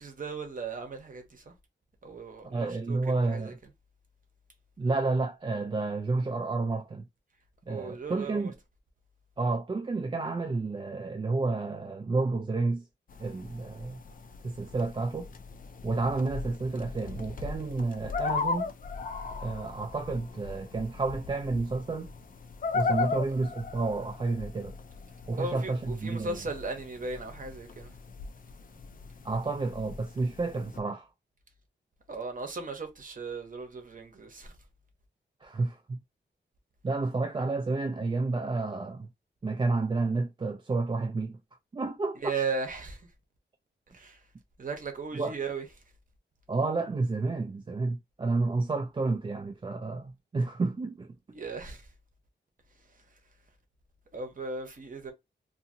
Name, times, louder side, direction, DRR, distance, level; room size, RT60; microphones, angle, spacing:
voice 1, 0.0-1.5 2.0-3.0 3.3-3.5 7.7-8.5 25.4-27.9 32.1-34.5 42.1-43.1 43.9-44.2 44.6-45.6 51.3-51.8 54.1-55.1, right 4 dB, 45° right, 0.9 m, -37 dB
voice 2, 2.4-3.6 4.8-7.0 7.7-8.5 9.4-12.8 13.2-14.0 14.4-15.3 15.8-18.7 19.4-22.1 22.7-24.7 25.3-26.4 29.2-31.1 35.4-36.0 36.8-39.1 39.4-41.4 41.7-42.2 45.1-45.3 46.5-51.1, right 3 dB, 25° right, 0.3 m, -30 dB
sound 1, 13.1-30.8, left 4 dB, 45° left, 0.4 m, -37 dB
2.7 x 2.6 x 2.6 m
wide cardioid pair, 125°, 19 cm